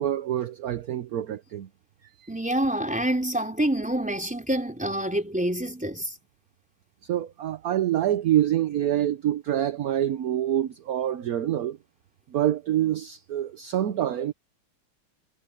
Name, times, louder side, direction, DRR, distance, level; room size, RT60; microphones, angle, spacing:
voice 1, 0.0-1.7 2.2-2.3 7.1-11.8 12.3-14.3, right 12 dB, 60° right, 1.0 m, -26 dB
voice 2, 2.3-6.1, right 1 dB, 5° right, 3.9 m, -27 dB
omnidirectional pair, 2.3 m